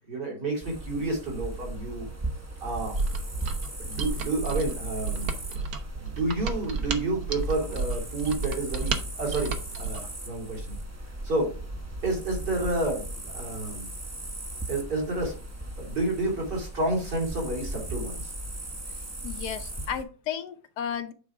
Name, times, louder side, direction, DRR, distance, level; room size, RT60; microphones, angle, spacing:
voice 1, 0.1-2.1 2.6-3.0 3.8-5.3 6.0-10.7 11.2-11.6 12.0-13.9 14.7-15.4 15.8-18.3, right 2 dB, 80° right, -4 dB, 4.1 m, -30 dB
sound 1, 0.6-20.0, right 1 dB, 20° right, 0.4 m, -37 dB
Mechanisms, 2.9-10.1, right 4 dB, 65° right, 1.3 m, -32 dB
voice 2, 19.2-21.1, left 8 dB, 75° left, 9 dB, 1.2 m, -33 dB
8.2 x 3.6 x 4.8 m, 0.37 s
omnidirectional pair, 1.8 m